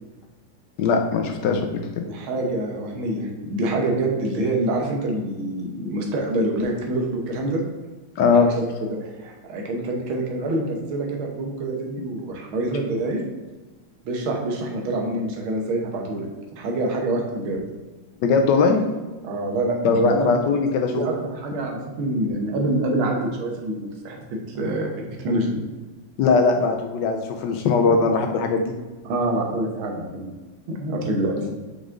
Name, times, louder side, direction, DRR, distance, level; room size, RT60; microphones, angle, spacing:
voice 1, 0.8-1.8 8.2-8.5 18.2-18.8 19.8-21.0 26.2-28.7 31.4-31.5, left 4 dB, 70° left, 4 dB, 1.1 m, -20 dB
voice 2, 2.0-7.6 8.3-13.2 14.0-16.3 16.6-17.6 19.2-20.3 20.9-24.9 25.2-25.6 27.8-28.0 29.1-30.3 30.7-31.4, right 2 dB, 85° right, 1 dB, 1.9 m, -26 dB
5.4 x 4.9 x 3.7 m, 1.2 s
omnidirectional pair, 2.2 m